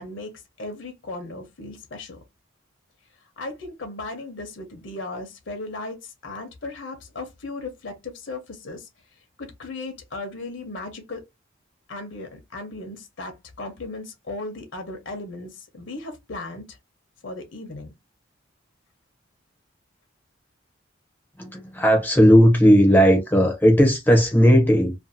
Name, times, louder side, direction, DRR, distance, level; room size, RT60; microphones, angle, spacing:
voice 1, 0.0-2.2 3.4-8.9 9.4-11.2 11.9-16.8 17.2-17.9, left 2 dB, 70° left, 0.7 m, -36 dB
voice 2, 21.4-24.9, equal, 10° left, 0.5 m, -16 dB
2.5 x 2.3 x 2.6 m
head